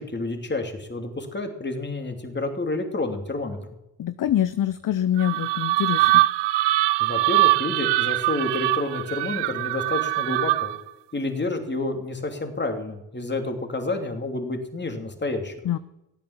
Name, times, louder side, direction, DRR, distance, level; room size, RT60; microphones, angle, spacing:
voice 1, 0.0-3.6 7.0-10.7 11.1-15.5, left 2 dB, 25° left, 5 dB, 2.9 m, -29 dB
voice 2, 4.0-6.2 15.6-15.8, left 11 dB, 45° left, 14 dB, 0.7 m, -25 dB
sound 1, 5.2-10.9, right 17 dB, 70° right, 0.5 m, -22 dB
15.5 x 8.7 x 7.4 m, 0.91 s
supercardioid pair, 65°, 43 cm